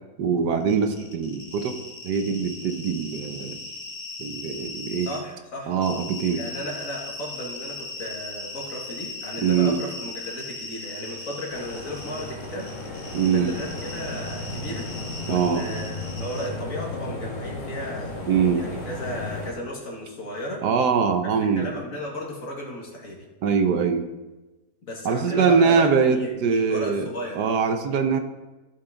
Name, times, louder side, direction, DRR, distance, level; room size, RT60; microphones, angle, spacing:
voice 1, 0.2-1.7 2.0-3.6 4.2-5.1 5.7-6.4 9.4-9.8 13.1-13.5 15.3-15.6 18.3-18.6 20.6-21.7 23.4-24.0 25.0-27.1 27.4-28.2, right 6 dB, 75° right, 7 dB, 1.4 m, -22 dB
sound 1, 0.6-5.2 5.8-16.5, left 2 dB, 25° left, 1.6 m, -38 dB
voice 2, 5.0-5.7 6.3-14.9 15.3-18.1 18.5-20.6 21.2-23.3 24.8-27.4, equal, 55° left, -1 dB, 2.2 m, -35 dB
sound 2, 11.5-19.5, left 2 dB, 85° left, 3.1 m, -34 dB
14.5 x 6.0 x 3.9 m, 1.1 s
omnidirectional pair, 1.8 m